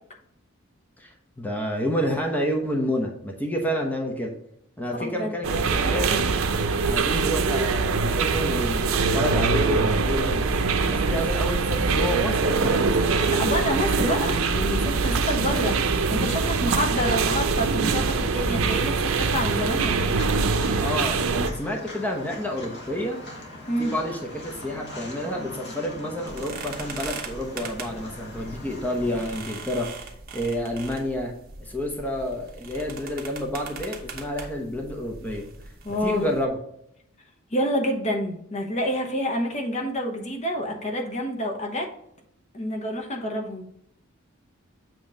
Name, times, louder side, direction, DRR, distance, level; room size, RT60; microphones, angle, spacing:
voice 1, 1.0-4.3 4.8-6.3 6.8-8.8 9.1-10.5 10.9-13.0 20.8-23.2 23.8-29.9 30.3-31.3 31.6-35.4 35.9-36.6, equal, 10° left, 1 dB, 0.9 m, -29 dB
voice 2, 5.0-5.4 13.3-15.8 16.1-20.1 23.7-23.9 35.8-36.3 37.5-41.9 42.5-43.7, equal, 35° left, 2 dB, 0.9 m, -28 dB
sound 1, 5.4-21.5, right 4 dB, 85° right, 0.6 m, -23 dB
Walk footsteps, 20.0-29.4, left 1 dB, 55° left, 1.5 m, -41 dB
sound 2, 26.3-36.5, right 4 dB, 45° right, 1.1 m, -40 dB
7.6 x 3.0 x 4.9 m, 0.72 s
head